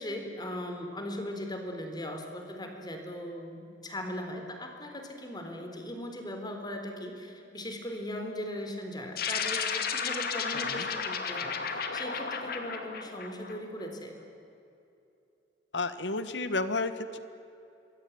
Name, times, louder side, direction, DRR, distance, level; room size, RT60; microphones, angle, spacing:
voice 1, 0.0-14.2, left 1 dB, 25° left, 4 dB, 3.9 m, -39 dB
sound 1, 9.2-13.9, left 6 dB, 55° left, 2.4 m, -33 dB
voice 2, 15.7-17.2, left 3 dB, 80° left, 12 dB, 1.5 m, -32 dB
26.5 x 22.0 x 9.7 m, 2.7 s
head